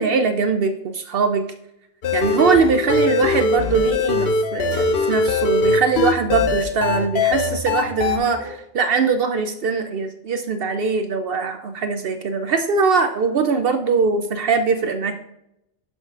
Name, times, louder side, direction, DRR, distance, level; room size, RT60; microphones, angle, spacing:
voice 1, 0.0-1.5 2.1-15.2, right 4 dB, 60° right, 8 dB, 0.6 m, -21 dB
sound 1, 2.0-8.2, left 3 dB, 60° left, 0.8 m, -21 dB
Keyboard (musical), 4.7-7.6, left 3 dB, 80° right, 1.8 m, -40 dB
11.0 x 5.5 x 2.4 m, 0.82 s
omnidirectional pair, 1.3 m